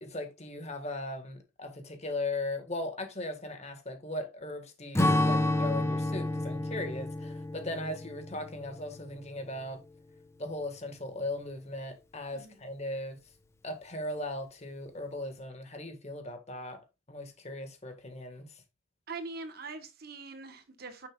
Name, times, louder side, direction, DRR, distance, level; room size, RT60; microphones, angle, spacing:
voice 1, 0.0-9.8 10.4-13.2 13.6-16.8 17.1-18.6, left 1 dB, 35° left, 1.6 m, -38 dB
Strum, 5.0-9.6, left 1 dB, 15° left, 0.8 m, -30 dB
voice 2, 19.1-21.1, right 3 dB, 50° right, 1.2 m, -42 dB
9.7 x 6.5 x 2.3 m
head